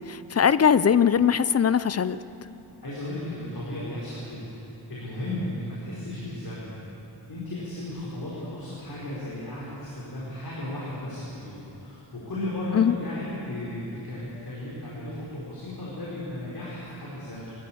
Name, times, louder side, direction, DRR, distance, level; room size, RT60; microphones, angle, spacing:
voice 1, 0.1-2.2 12.7-12.9, left 7 dB, 35° left, 15 dB, 0.5 m, -21 dB
voice 2, 2.8-4.5 4.9-6.7 7.3-17.5, left 1 dB, 55° left, -7 dB, 4.7 m, -35 dB
22.0 x 14.0 x 8.7 m, 3.0 s
wide cardioid pair, 125°, 43 cm